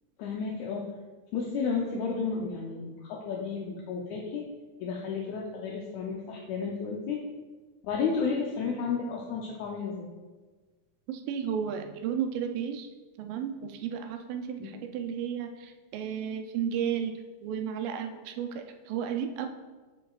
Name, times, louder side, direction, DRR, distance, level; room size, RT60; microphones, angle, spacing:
voice 1, 0.2-0.8 1.3-4.4 4.8-7.2 7.8-10.1 14.6-14.7, left 5 dB, 80° left, -1 dB, 1.7 m, -32 dB
voice 2, 11.1-12.9 13.2-19.5, right 8 dB, 85° right, 5 dB, 2.2 m, -33 dB
10.5 x 4.8 x 2.3 m, 1.3 s
omnidirectional pair, 3.9 m